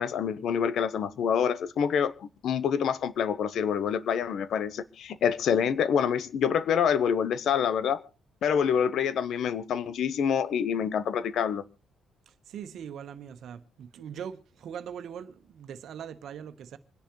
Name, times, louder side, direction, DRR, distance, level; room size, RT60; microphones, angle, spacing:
voice 1, 0.0-8.0 8.4-11.6, left 7 dB, 65° left, 1.0 m, -27 dB
voice 2, 12.3-16.8, right 8 dB, 65° right, 1.3 m, -41 dB
26.5 x 10.5 x 3.2 m
cardioid pair, 125°, 0 cm